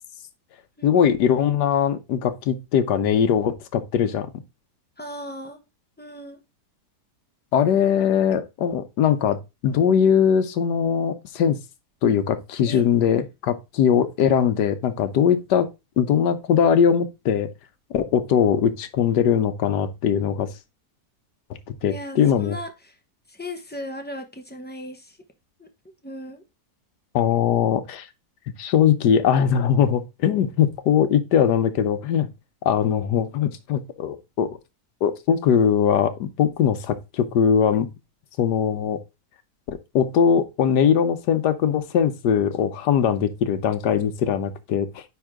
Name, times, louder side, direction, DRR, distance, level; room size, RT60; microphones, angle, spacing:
voice 1, 0.8-4.3 7.5-11.6 12.0-15.7 16.0-17.5 17.9-20.5 21.8-22.6 27.1-28.1 28.6-32.3 32.6-34.5 35.0-37.9 38.4-39.0 39.7-45.0, left 8 dB, 80° left, 1.4 m, -21 dB
voice 2, 5.0-5.6 6.0-6.4 12.6-12.8 21.9-23.0 23.3-25.2 25.6-26.4, left 1 dB, 10° left, 0.7 m, -37 dB
9.6 x 3.7 x 3.6 m
omnidirectional pair, 1.8 m